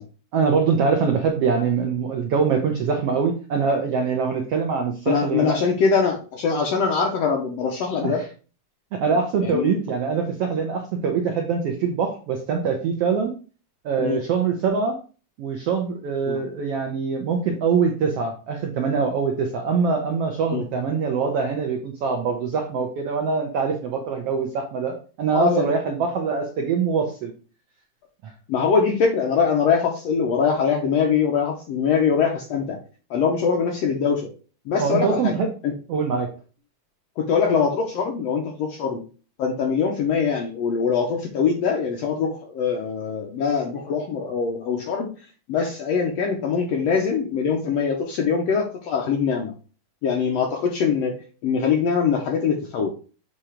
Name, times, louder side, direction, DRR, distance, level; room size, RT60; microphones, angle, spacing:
voice 1, 0.3-5.6 8.0-8.2 8.9-13.3 13.8-15.0 15.4-27.3 28.2-28.3 34.8-35.5 35.9-36.3, right 5 dB, 80° right, 3 dB, 1.4 m, -23 dB
voice 2, 5.1-8.2 9.1-9.8 14.0-14.2 16.3-16.4 20.5-20.6 25.3-25.7 28.5-32.8 33.1-34.3 34.7-35.3 35.6-35.7 37.2-39.0 39.4-45.1 45.5-49.5 50.0-52.9, left 6 dB, 75° left, 2 dB, 1.5 m, -23 dB
7.5 x 2.9 x 4.9 m, 0.37 s
omnidirectional pair, 3.7 m